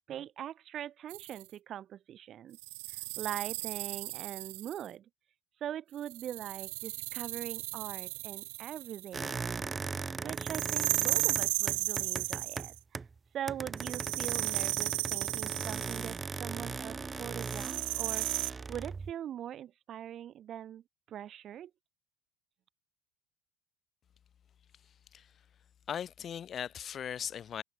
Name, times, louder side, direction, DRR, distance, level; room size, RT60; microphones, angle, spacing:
voice 1, 0.1-2.6 2.9-5.1 5.6-9.6 10.2-12.7 13.3-21.7, right 10 dB, 30° right, 3.4 m, -42 dB
sound 1, 1.1-1.4 2.6-4.9 6.0-9.2 10.4-12.8 13.8-16.1 17.4-18.5, right 26 dB, 70° right, 0.6 m, -35 dB
sound 2, 9.1-13.2 13.5-19.1, right 4 dB, 15° right, 1.6 m, -38 dB
voice 2, 25.9-27.6, left 9 dB, 25° left, 3.9 m, -38 dB
cardioid pair, 170°, 0 cm